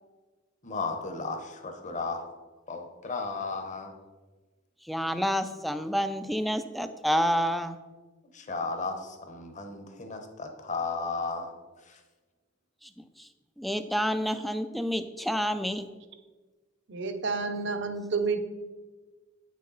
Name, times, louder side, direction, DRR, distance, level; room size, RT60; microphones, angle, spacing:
voice 1, 0.6-2.3 2.7-3.9 8.3-11.5 11.9-12.0, left 3 dB, 40° left, 6 dB, 0.9 m, -34 dB
voice 2, 4.8-7.8 12.8-13.3 13.6-15.9, equal, ahead, 10 dB, 0.3 m, -29 dB
voice 3, 16.9-18.4, right 4 dB, 65° right, 7 dB, 0.8 m, -30 dB
9.0 x 6.5 x 4.0 m, 1.3 s
head